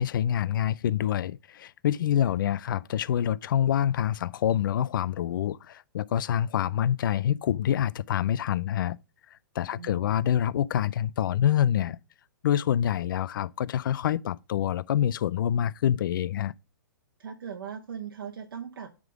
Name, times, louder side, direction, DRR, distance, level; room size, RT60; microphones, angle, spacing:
voice 1, 0.0-9.0 9.5-12.0 12.4-16.5, left 10 dB, 65° left, 0.4 m, -26 dB
voice 2, 9.7-10.1 17.2-18.9, right 7 dB, 80° right, 1.0 m, -39 dB
9.5 x 3.7 x 4.9 m
hypercardioid pair, 135°, 12 cm